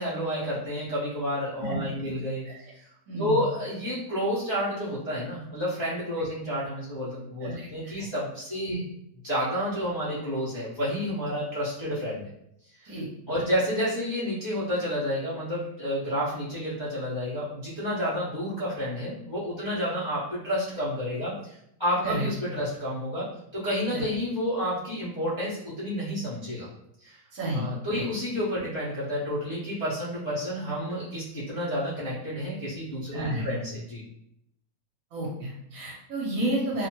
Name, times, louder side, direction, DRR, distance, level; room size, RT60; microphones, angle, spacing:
voice 1, 0.0-2.5 2.7-2.9 3.2-8.8 9.2-12.3 12.8-12.9 13.3-23.3 23.5-26.7 27.0-27.2 27.5-34.0, equal, 30° left, -11 dB, 0.5 m, -30 dB
voice 2, 1.6-2.1 2.4-2.7 3.1-3.4 6.2-6.3 7.4-8.1 8.7-8.8 12.8-13.4 22.0-22.3 23.9-24.0 27.3-28.1 33.1-33.5 35.1-36.9, right 1 dB, 60° right, -4 dB, 1.1 m, -32 dB
2.7 x 2.2 x 2.9 m, 0.76 s
omnidirectional pair, 1.8 m